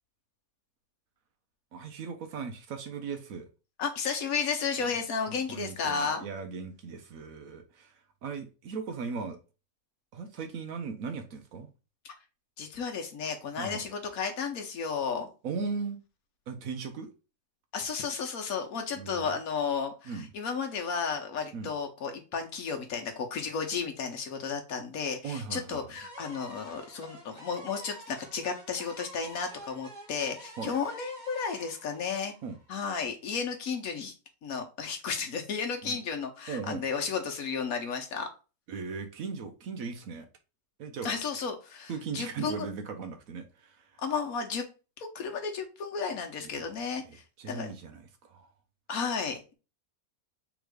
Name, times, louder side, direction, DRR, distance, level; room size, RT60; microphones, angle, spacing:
voice 1, 1.7-3.5 4.8-4.9 5.3-9.4 10.1-11.7 13.6-13.9 15.4-16.0 16.5-17.1 19.0-19.3 20.0-20.3 21.5-21.7 25.2-25.9 30.6-30.7 32.4-32.6 35.8-36.0 36.5-36.8 38.7-40.3 40.8-41.2 41.9-44.0 46.4-46.7 47.0-48.5, right 5 dB, 70° right, 1.1 m, -38 dB
voice 2, 3.8-6.2 12.0-12.1 12.6-15.3 17.7-32.3 32.7-34.1 34.4-38.3 41.0-42.7 44.0-44.7 45.0-47.7 48.9-49.5, left 5 dB, 75° left, 1.3 m, -33 dB
sound 1, 26.0-32.9, right 1 dB, 35° right, 1.2 m, -49 dB
3.6 x 3.0 x 4.7 m
omnidirectional pair, 1.5 m